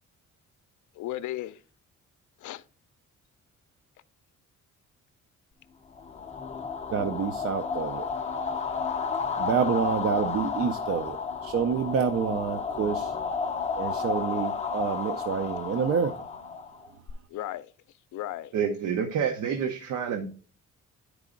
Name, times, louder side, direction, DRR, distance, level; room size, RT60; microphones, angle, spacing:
voice 1, 1.0-1.6 2.4-2.6 8.3-9.4 17.3-17.7 18.1-18.5, left 14 dB, 70° left, 0.5 m, -37 dB
sound 1, 6.0-17.1, left 5 dB, 20° left, 0.5 m, -32 dB
voice 2, 6.9-8.0 9.4-11.2 11.4-13.1 13.8-16.2, right 6 dB, 50° right, 0.5 m, -28 dB
voice 3, 18.5-20.3, right 7 dB, 75° right, 0.9 m, -28 dB
10.0 x 4.8 x 3.7 m
cardioid pair, 160°, 31 cm